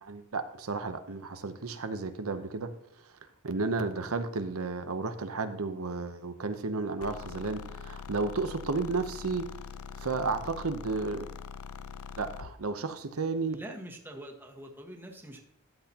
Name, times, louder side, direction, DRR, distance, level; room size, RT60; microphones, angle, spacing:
voice 1, 0.0-2.7 3.4-9.5 10.0-11.3 12.2-13.6, right 3 dB, 85° right, 9 dB, 0.8 m, -32 dB
sound 1, 7.0-12.6, left 6 dB, 90° left, 0.5 m, -43 dB
voice 2, 13.5-15.4, right 1 dB, 10° right, 1 dB, 1.4 m, -44 dB
12.5 x 8.0 x 2.9 m, 0.76 s
head